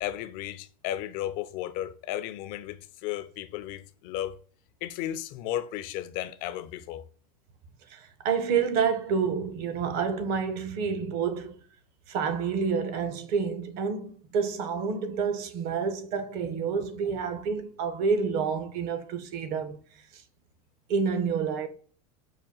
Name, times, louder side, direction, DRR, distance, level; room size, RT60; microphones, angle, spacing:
voice 1, 0.0-4.4 4.8-7.0 17.1-17.2, left 12 dB, 50° left, 0.4 m, -34 dB
voice 2, 7.9-11.6 12.1-19.8 20.1-20.2 20.9-21.7, right 6 dB, 55° right, 0.8 m, -28 dB
4.9 x 2.2 x 3.7 m
supercardioid pair, 115°, 18 cm